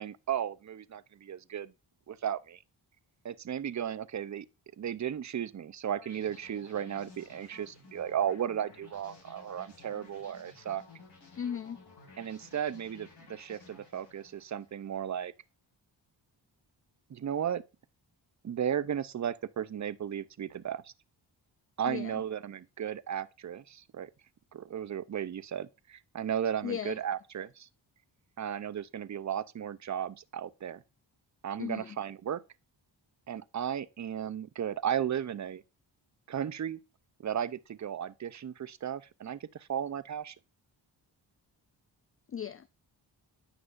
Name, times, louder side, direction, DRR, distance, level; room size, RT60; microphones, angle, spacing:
voice 1, 0.0-1.7 2.1-2.6 3.2-4.5 4.8-10.8 12.2-15.3 17.1-17.6 18.4-20.8 21.8-24.1 24.5-27.7 28.4-30.8 31.4-32.4 33.3-35.6 36.3-36.8 37.2-40.3, right 9 dB, 40° right, 0.6 m, -35 dB
sound 1, 6.0-15.0, left 3 dB, 55° left, 4.7 m, -55 dB
voice 2, 11.4-11.8 21.9-22.2 26.6-27.0 31.6-32.0 42.3-42.7, left 8 dB, 30° left, 0.4 m, -36 dB
9.5 x 6.0 x 2.5 m
cardioid pair, 50°, 47 cm